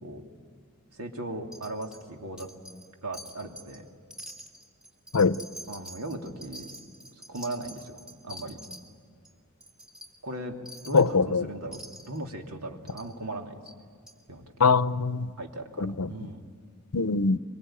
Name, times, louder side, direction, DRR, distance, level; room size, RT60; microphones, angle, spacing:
voice 1, 0.9-2.5 3.0-3.9 5.7-6.7 7.3-8.6 10.2-10.6 10.8-13.5 14.3-14.4 15.4-16.5, right 1 dB, 85° right, 2.9 m, -38 dB
Wind chime, 1.5-2.0 2.4-2.9 3.1-3.8 4.1-8.8 9.2-9.3 9.6-10.1 10.7-11.1 11.7-12.2 12.9-13.1 13.7-13.8 14.1-14.2, equal, 5° right, 2.9 m, -45 dB
voice 2, 10.9-11.4 14.6-15.3 15.8-16.1 16.9-17.4, left 4 dB, 85° left, 0.7 m, -22 dB
25.0 x 23.0 x 9.0 m
head